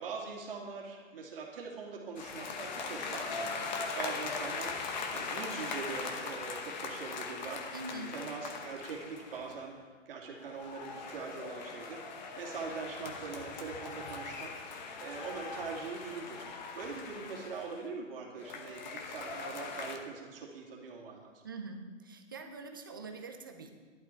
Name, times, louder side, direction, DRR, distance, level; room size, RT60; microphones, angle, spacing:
voice 1, 0.0-14.7 15.0-16.5 16.8-21.4, right 5 dB, 45° right, -1 dB, 2.4 m, -43 dB
sound 1, 2.2-9.7 10.4-17.9 18.4-20.0, left 4 dB, 35° left, 1.1 m, -40 dB
voice 2, 7.7-8.2 21.4-23.7, right 3 dB, 20° right, 3 dB, 0.5 m, -44 dB
12.0 x 11.5 x 4.4 m, 1.5 s
hypercardioid pair, 160°, 39 cm